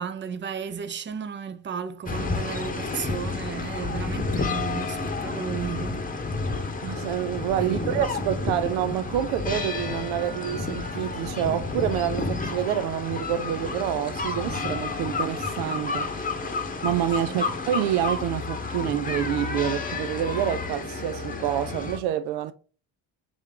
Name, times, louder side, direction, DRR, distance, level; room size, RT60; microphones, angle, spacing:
voice 1, 0.0-6.1 7.6-8.1 17.2-17.6, right 7 dB, 25° right, 0.5 m, -34 dB
sound 1, 2.1-22.0, left 3 dB, 15° left, 0.9 m, -30 dB
voice 2, 6.8-16.3 16.8-22.5, right 11 dB, 75° right, 0.5 m, -27 dB
3.5 x 3.3 x 3.5 m
hypercardioid pair, 60°, 49 cm